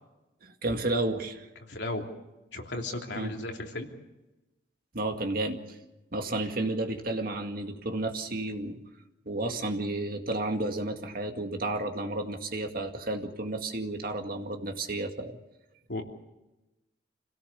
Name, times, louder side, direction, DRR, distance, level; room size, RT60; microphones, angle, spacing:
voice 1, 0.4-1.5 3.2-3.4 4.9-5.8 6.1-8.8 9.3-15.4, right 2 dB, 50° right, 5 dB, 2.1 m, -32 dB
voice 2, 1.6-2.0 2.5-3.9 15.9-16.0, left 2 dB, 70° left, 2 dB, 2.9 m, -35 dB
26.5 x 17.5 x 7.0 m, 0.99 s
head